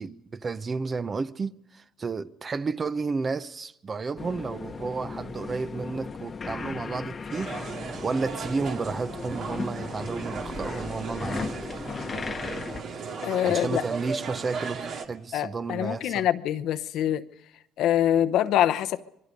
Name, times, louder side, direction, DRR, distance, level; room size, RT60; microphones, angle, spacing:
voice 1, 0.0-7.6 7.8-11.5 13.4-16.3, right 4 dB, 30° right, 0.8 m, -32 dB
sound 1, 4.2-12.8, left 5 dB, 30° left, 1.1 m, -37 dB
sound 2, 7.3-15.1, right 5 dB, 60° right, 2.4 m, -36 dB
voice 2, 13.2-13.8 15.3-17.2 17.8-19.0, left 11 dB, 70° left, 0.9 m, -24 dB
26.0 x 22.5 x 5.3 m
cardioid pair, 95°, 0 cm